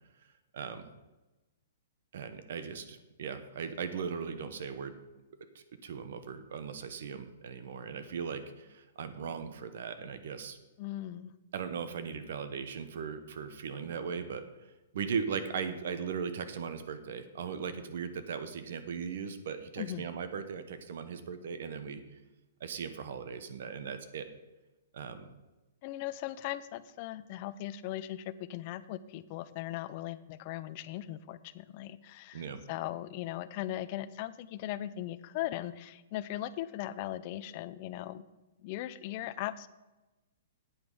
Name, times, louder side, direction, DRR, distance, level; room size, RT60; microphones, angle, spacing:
voice 1, 0.5-0.9 2.1-4.9 5.5-10.6 11.5-14.5 14.9-22.0 22.6-24.3 24.9-25.3 32.3-32.6, right 6 dB, 60° right, 10 dB, 1.0 m, -38 dB
voice 2, 10.8-11.3 19.8-20.1 25.8-38.2 38.6-39.7, left 14 dB, 35° left, 15 dB, 0.4 m, -39 dB
8.8 x 8.0 x 5.4 m, 1.1 s
hypercardioid pair, 165°, 0 cm